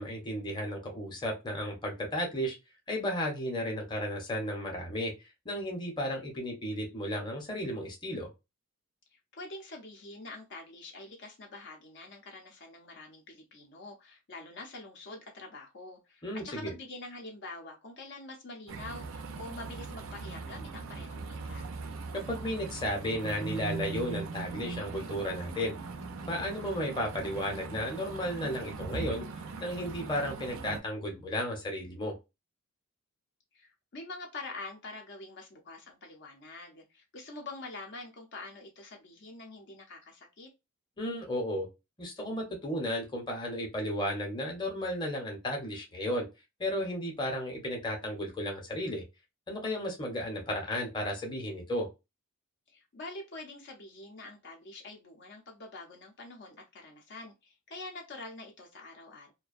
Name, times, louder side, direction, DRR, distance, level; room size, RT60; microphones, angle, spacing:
voice 1, 0.0-2.6 2.9-5.1 5.4-8.3 16.2-16.7 22.1-25.7 26.3-29.3 29.6-32.1 41.0-41.7 42.0-46.3 46.6-49.0 49.5-51.9, equal, 20° left, 1 dB, 0.7 m, -34 dB
voice 2, 9.1-21.7 33.5-40.5 52.7-59.3, left 2 dB, 55° left, 1 dB, 0.6 m, -46 dB
sound 1, 18.7-30.8, right 4 dB, 65° right, 0.4 m, -40 dB
2.4 x 2.2 x 2.4 m, 0.25 s
head